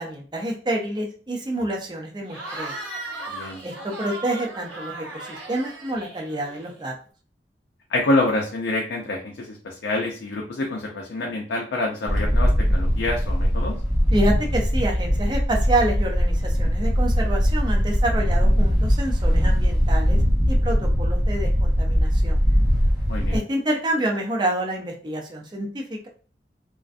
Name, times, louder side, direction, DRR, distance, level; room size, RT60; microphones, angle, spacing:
voice 1, 0.0-2.8 3.6-6.9 14.1-20.2 20.5-22.4 23.3-26.1, right 1 dB, 25° right, 0 dB, 0.4 m, -28 dB
Cheering / Crowd, 2.3-6.9, right 2 dB, 70° right, 0.9 m, -37 dB
voice 2, 3.3-3.6 7.9-13.8 23.1-23.4, left 2 dB, 80° left, 0 dB, 0.4 m, -26 dB
Wind, 12.1-23.4, equal, ahead, 0.9 m, -20 dB
2.4 x 2.2 x 2.5 m, 0.40 s
head